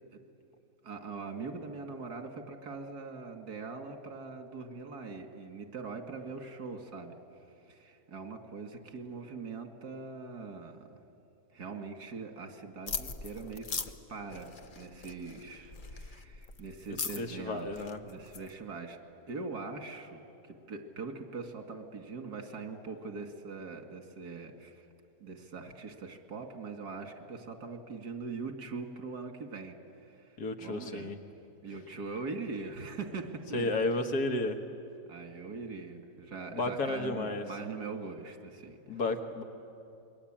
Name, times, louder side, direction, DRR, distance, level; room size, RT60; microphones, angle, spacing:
voice 1, 0.8-7.2 7.7-11.0 11.5-13.6 14.1-19.0 19.3-24.9 25.2-31.1 31.6-33.7 35.1-39.0, right 4 dB, 80° right, 5 dB, 2.6 m, -42 dB
sound 1, 12.9-18.5, left 5 dB, 40° left, 0.9 m, -41 dB
voice 2, 17.2-18.0 30.4-31.2 33.5-34.6 36.5-37.4 38.9-39.4, left 2 dB, 80° left, 5 dB, 2.2 m, -32 dB
27.5 x 22.5 x 8.9 m, 2.7 s
omnidirectional pair, 1.7 m